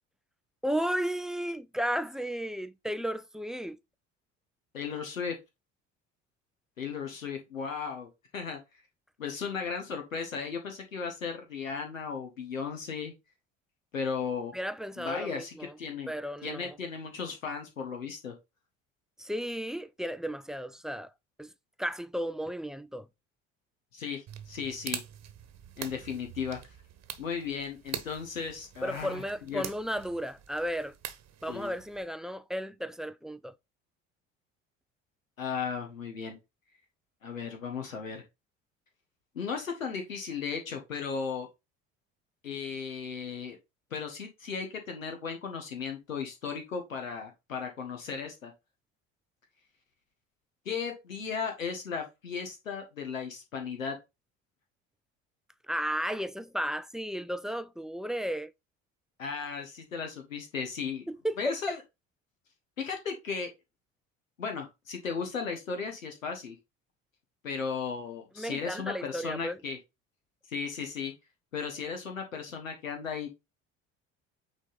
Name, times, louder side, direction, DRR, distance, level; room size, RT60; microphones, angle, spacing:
voice 1, 0.6-3.8 14.5-15.7 16.1-16.8 19.2-21.1 21.4-21.5 21.8-23.1 28.8-30.9 31.4-33.5 55.7-58.5 61.1-61.8 68.4-69.6, equal, ahead, 0.3 m, -34 dB
voice 2, 4.7-5.4 6.8-8.6 9.2-13.1 13.9-14.5 15.0-16.1 16.4-18.3 23.9-25.0 25.8-26.6 27.2-29.7 31.5-31.7 35.4-36.4 37.2-38.2 39.3-41.5 42.4-43.6 43.9-48.5 50.6-53.9 59.2-61.0 61.4-61.8 62.8-63.5 64.4-66.5 67.4-69.8 70.5-71.1 71.5-73.3, left 6 dB, 80° left, 1.4 m, -36 dB
sound 1, 24.3-32.0, right 10 dB, 45° right, 1.2 m, -44 dB
8.8 x 3.5 x 4.0 m
figure-of-eight pair, 60°, 39 cm